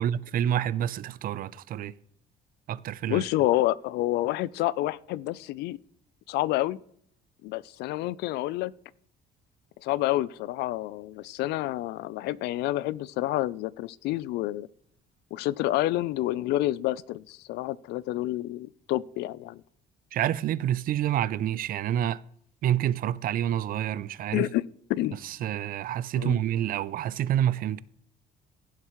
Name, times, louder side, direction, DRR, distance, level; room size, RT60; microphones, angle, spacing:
voice 1, 0.0-1.9 2.7-3.2 20.1-22.2 22.6-24.5 25.2-27.8, right 11 dB, 60° right, 0.5 m, -28 dB
voice 2, 3.1-5.8 6.3-6.8 7.4-8.7 9.8-14.7 15.3-19.6 24.3-24.6 24.9-25.2 26.2-26.4, left 16 dB, 80° left, 0.4 m, -28 dB
16.0 x 7.5 x 3.1 m
cardioid pair, 110°, 17 cm